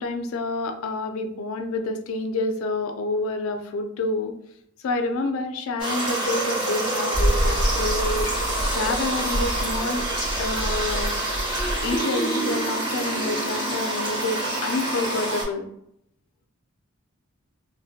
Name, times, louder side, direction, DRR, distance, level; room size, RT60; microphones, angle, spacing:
voice 1, 0.0-4.3 4.8-8.3 8.7-10.1 10.4-11.1 11.8-15.7, left 2 dB, 70° left, 5 dB, 0.3 m, -28 dB
sound 1, 5.8-15.4, right 2 dB, 60° right, 1.1 m, -27 dB
sound 2, 7.1-12.0, equal, 40° right, 0.7 m, -28 dB
2.4 x 2.1 x 2.6 m, 0.74 s
head